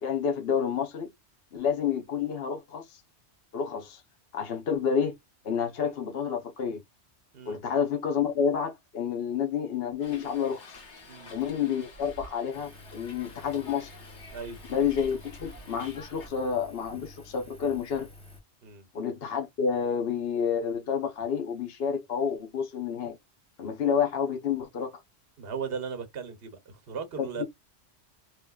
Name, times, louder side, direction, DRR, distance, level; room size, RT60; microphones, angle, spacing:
voice 1, 0.0-1.1 1.5-3.0 3.5-4.0 4.3-5.1 5.4-6.8 7.5-10.7 11.3-13.9 14.7-18.1 18.9-23.2 23.6-25.0 27.2-27.4, left 7 dB, 65° left, 1.0 m, -29 dB
Hiss, 10.0-16.3, left 1 dB, 90° left, 1.6 m, -48 dB
Engine, 12.5-18.4, left 2 dB, 5° left, 0.9 m, -50 dB
voice 2, 25.4-27.4, right 6 dB, 60° right, 1.0 m, -37 dB
3.4 x 3.0 x 2.3 m
omnidirectional pair, 1.1 m